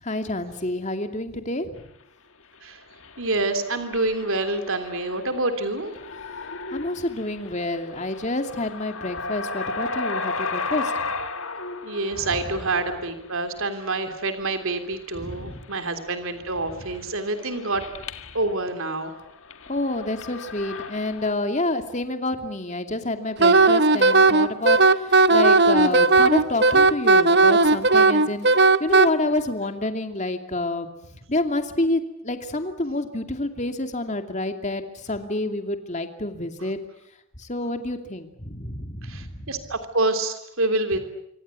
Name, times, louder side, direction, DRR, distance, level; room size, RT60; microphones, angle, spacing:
voice 1, 0.0-1.7 6.7-11.0 12.2-12.5 15.1-15.6 19.7-30.9 31.3-36.8 37.4-39.6 40.9-41.0, left 2 dB, 30° left, 7 dB, 2.6 m, -28 dB
sound 1, 2.9-18.5 19.0-21.3, left 3 dB, 60° left, 1.9 m, -35 dB
voice 2, 3.2-5.9 11.8-17.8 18.3-19.1 39.0-41.0, right 2 dB, 65° right, 7 dB, 3.2 m, -27 dB
Wind instrument woodwind instrument, 23.4-29.1, right 3 dB, 50° right, 1.0 m, -16 dB
26.5 x 25.5 x 8.4 m, 0.78 s
head